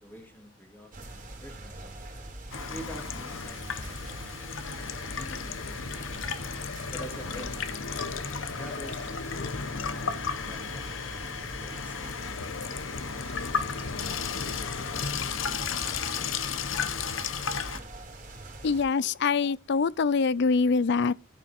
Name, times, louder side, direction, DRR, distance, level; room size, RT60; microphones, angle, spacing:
voice 1, 0.0-2.0 2.7-3.9 5.1-7.7 8.5-12.2 12.6-13.5, equal, 10° left, 2.6 m, -48 dB
sound 1, 0.9-18.8, right 2 dB, 40° right, 3.9 m, -43 dB
Water tap faucet / Sink (filling or washing), 2.5-17.8, left 6 dB, 80° left, 1.0 m, -34 dB
voice 2, 18.6-21.1, left 4 dB, 60° left, 0.5 m, -24 dB
14.0 x 5.7 x 4.3 m
head